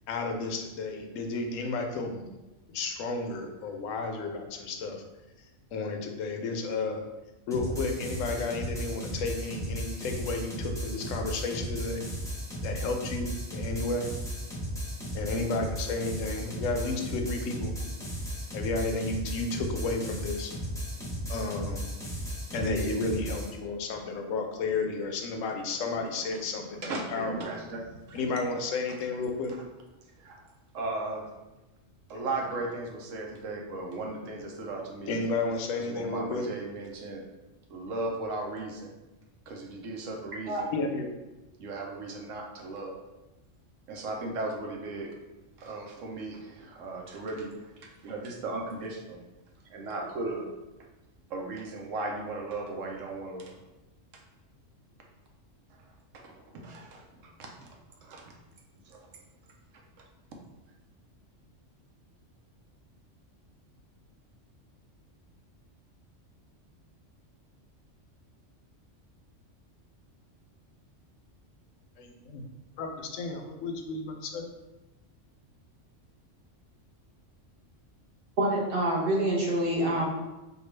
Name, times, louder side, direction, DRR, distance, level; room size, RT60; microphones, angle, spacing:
voice 1, 0.1-2.3 2.7-5.0 5.7-7.0 7.5-12.0 12.6-14.1 15.1-17.7 18.5-20.5 21.3-21.8 22.5-27.4 28.1-29.6 35.1-36.5 40.7-41.1 72.0-72.4 72.8-74.4, left 3 dB, 90° left, 4 dB, 1.0 m, -32 dB
sound 1, 7.5-23.5, equal, 5° left, 0.5 m, -35 dB
voice 2, 26.8-28.2 30.2-31.3 32.1-35.2 35.8-37.2 37.7-38.9 39.5-40.7 41.6-42.9 43.9-45.1 45.6-47.7 48.0-49.2 49.7-50.4 51.3-53.6 56.2-58.3 58.9-59.0, right 2 dB, 90° right, 0 dB, 1.1 m, -37 dB
voice 3, 78.4-80.1, right 1 dB, 50° right, -5 dB, 1.1 m, -26 dB
4.4 x 2.3 x 3.2 m, 1.0 s
omnidirectional pair, 1.3 m